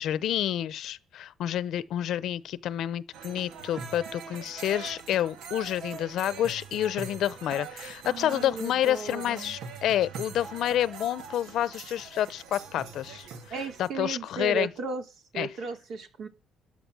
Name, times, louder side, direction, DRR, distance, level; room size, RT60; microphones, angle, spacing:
voice 1, 0.0-13.3 13.8-14.7 15.4-15.5, left 11 dB, 60° left, 0.9 m, -29 dB
sound 1, 3.1-13.9, right 6 dB, 80° right, 2.1 m, -42 dB
voice 2, 8.1-9.6 13.5-15.0 15.3-16.3, right 4 dB, 60° right, 3.4 m, -35 dB
14.0 x 10.0 x 6.2 m
cardioid pair, 160°, 0 cm